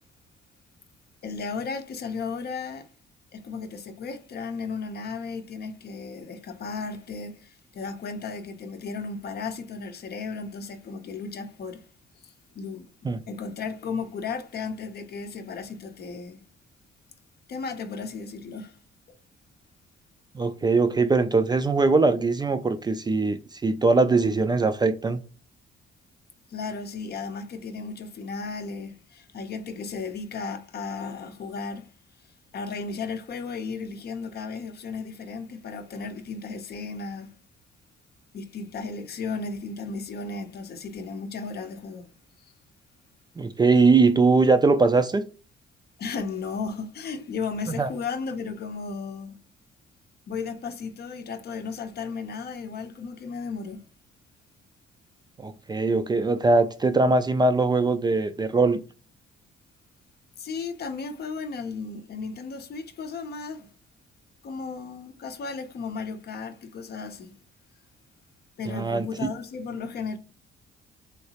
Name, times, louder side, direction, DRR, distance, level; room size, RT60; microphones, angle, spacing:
voice 1, 1.2-2.9 3.3-11.9 12.2-12.9 13.3-16.4 17.5-18.8 26.5-31.9 32.5-37.3 38.3-42.1 46.0-49.4 50.3-53.8 60.4-63.7 64.4-67.4 68.6-70.2, left 4 dB, 55° left, 0.6 m, -35 dB
voice 2, 20.3-25.2 43.4-45.2 47.7-47.9 55.4-58.8 68.7-69.1, right 3 dB, 20° right, 0.3 m, -21 dB
3.2 x 2.8 x 2.8 m
cardioid pair, 90°, 20 cm